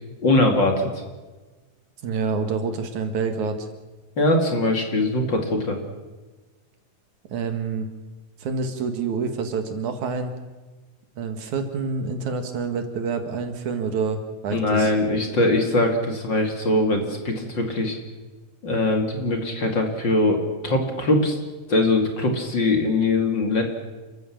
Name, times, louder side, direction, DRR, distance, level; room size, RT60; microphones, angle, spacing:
voice 1, 0.2-0.9 4.2-5.8 14.5-18.0 18.6-21.3 21.7-23.6, left 2 dB, 40° left, 3 dB, 2.7 m, -21 dB
voice 2, 2.0-3.7 7.3-7.9 8.4-10.3 11.2-14.9, right 5 dB, 70° right, 6 dB, 3.2 m, -27 dB
29.0 x 14.5 x 7.2 m, 1.3 s
omnidirectional pair, 3.6 m